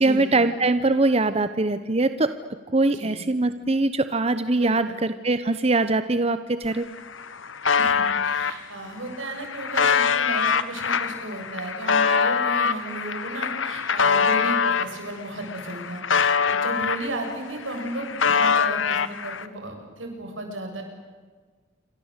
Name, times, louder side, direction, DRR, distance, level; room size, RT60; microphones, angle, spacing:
voice 1, 0.0-2.3 2.7-6.9, right 2 dB, 30° right, 11 dB, 0.9 m, -22 dB
voice 2, 4.6-4.9 7.8-20.8, right 1 dB, 85° right, 3 dB, 7.4 m, -34 dB
sound 1, 6.6-6.7 7.0-8.5 9.1-14.9 15.4-17.3 17.6-19.5, left 6 dB, 85° left, 1.4 m, -23 dB
28.0 x 25.5 x 8.2 m, 1.5 s
head